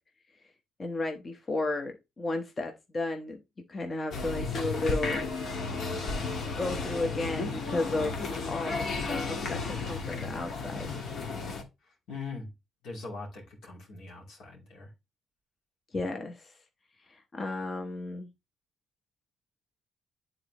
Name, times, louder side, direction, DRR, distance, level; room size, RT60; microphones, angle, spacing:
voice 1, 0.8-3.4 3.7-5.3 6.4-11.1 15.9-16.5 17.1-18.3, left 2 dB, 35° left, 0.9 m, -34 dB
sound 1, 4.1-11.6, left 4 dB, 65° left, 1.5 m, -33 dB
voice 2, 12.1-12.5 12.8-14.9, left 4 dB, 85° left, 2.5 m, -41 dB
9.4 x 4.0 x 3.0 m
cardioid pair, 90°, 0 cm